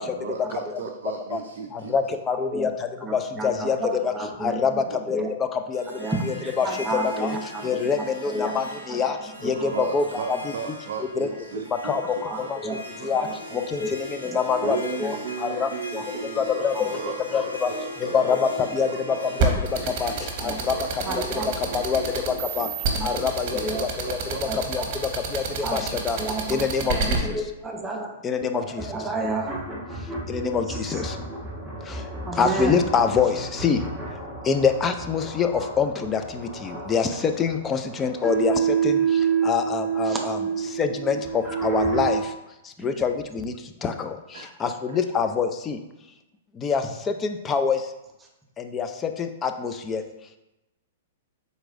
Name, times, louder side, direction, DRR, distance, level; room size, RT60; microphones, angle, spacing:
voice 1, 0.0-1.9 4.6-5.0 9.4-13.4 14.6-24.5 44.3-44.5, right 7 dB, 60° right, 3 dB, 0.4 m, -37 dB
voice 2, 1.7-2.7 3.1-3.8 4.0-4.1 4.4-4.7 5.1-5.2 5.7-5.8 6.6-6.7 7.2-7.3 7.6-9.2 9.4-10.4 11.2-11.3 11.8-12.0 12.5-12.6 13.0-13.3 13.5-13.8 14.3-14.8 15.0-15.1 15.4-15.7 16.4-16.7 17.3-17.7 18.0-19.5 20.0-20.1 20.4-20.7 21.1-21.2 21.7-22.7 23.0-24.2 24.7-24.8 25.3-26.2 26.5-27.2 28.2-28.8 30.3-31.1 32.4-33.8 34.5-38.5 38.8-39.0 39.4-40.4 40.8-42.2 42.8-43.5 43.8-44.2 44.6-45.8 46.6-46.8 47.2-47.8 48.6-48.9 49.2-50.0, left 6 dB, 20° left, 7 dB, 0.4 m, -25 dB
voice 3, 2.3-2.7 3.0-5.3 6.0-9.9 12.2-12.8 13.1-13.9 14.2-15.2 16.0-16.1 16.7-16.9 20.4-20.6 21.0-21.5 22.9-23.1 23.5-23.8 24.5-24.9 25.6-25.8 26.2-28.1 28.6-29.5 30.4-31.0 32.2-32.8 40.0-40.3 42.8-43.0 43.3-43.4, right 2 dB, 15° right, 1 dB, 0.7 m, -32 dB
Harp, 5.7-23.0, left 1 dB, 90° left, 1.0 m, -41 dB
sound 1, 19.4-27.2, right 5 dB, 45° right, 0.9 m, -27 dB
sound 2, 28.7-42.2, right 6 dB, ahead, 1.3 m, -29 dB
4.6 x 4.0 x 2.5 m, 0.96 s
hypercardioid pair, 110°, 0 cm